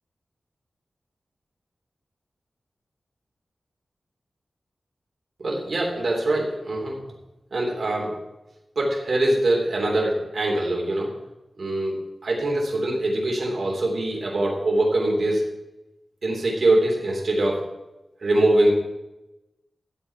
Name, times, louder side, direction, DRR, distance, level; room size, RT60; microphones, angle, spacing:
voice 1, 5.4-7.0 7.5-8.1 8.7-11.1 11.6-11.9 12.2-15.4 16.2-17.6 18.2-18.7, right 1 dB, 60° right, -2 dB, 3.4 m, -23 dB
12.5 x 8.1 x 4.8 m, 0.98 s
wide cardioid pair, 115°, 0 cm